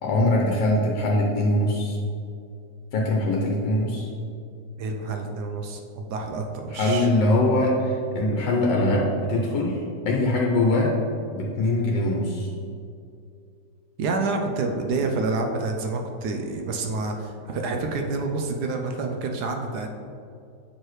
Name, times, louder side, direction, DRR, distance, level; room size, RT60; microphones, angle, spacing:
voice 1, 0.0-2.0 2.9-4.1 6.7-9.8 10.1-10.9 11.3-12.5, left 1 dB, 90° left, -2 dB, 1.4 m, -22 dB
voice 2, 4.8-7.1 14.0-19.9, right 3 dB, 70° right, 3 dB, 1.1 m, -28 dB
7.4 x 4.7 x 3.1 m, 2.4 s
omnidirectional pair, 1.9 m